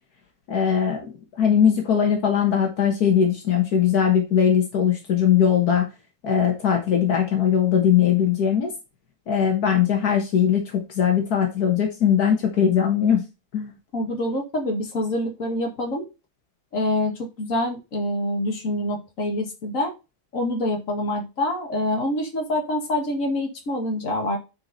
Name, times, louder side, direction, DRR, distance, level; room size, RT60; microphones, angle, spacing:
voice 1, 0.5-1.1 1.4-5.9 6.2-8.7 9.3-13.2 13.5-13.7, left 8 dB, 80° left, 2 dB, 1.9 m, -20 dB
voice 2, 13.9-16.1 16.7-19.9 20.3-24.4, left 1 dB, 55° left, 2 dB, 2.2 m, -26 dB
9.4 x 4.7 x 4.0 m, 0.28 s
omnidirectional pair, 1.6 m